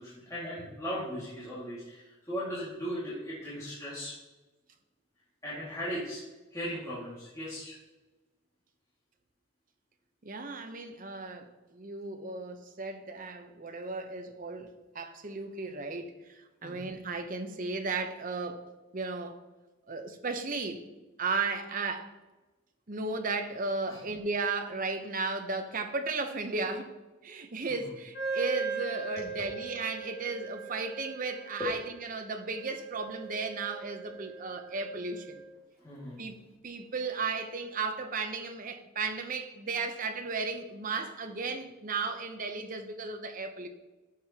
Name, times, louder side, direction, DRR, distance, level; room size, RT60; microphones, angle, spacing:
voice 1, 0.0-4.2 5.4-6.2 6.5-7.8 16.6-16.8 23.8-24.0 27.7-27.9 29.2-29.3 31.6-31.7 35.8-36.2, equal, 15° left, -9 dB, 2.0 m, -37 dB
voice 2, 10.2-18.6 18.9-19.4 19.9-20.9 21.2-22.1 22.9-26.9 27.2-31.8 32.1-35.4 36.2-36.3 36.6-43.7, right 4 dB, 40° right, 6 dB, 0.8 m, -35 dB
Wind instrument woodwind instrument, 28.1-35.5, right 5 dB, 45° left, 1.7 m, -39 dB
10.5 x 6.7 x 2.9 m, 1.1 s
head